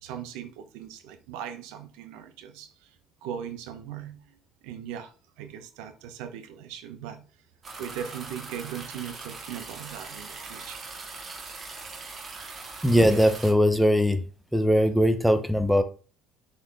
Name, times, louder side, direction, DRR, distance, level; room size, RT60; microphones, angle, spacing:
voice 1, 0.0-2.9 3.2-4.2 4.6-7.3 7.8-10.8, right 9 dB, 85° right, 0.9 m, -39 dB
sound 1, 7.6-13.5, right 3 dB, 35° right, 1.7 m, -41 dB
voice 2, 12.8-14.2 14.5-15.8, equal, ahead, 0.9 m, -20 dB
7.2 x 4.5 x 3.5 m
cardioid pair, 110°, 0 cm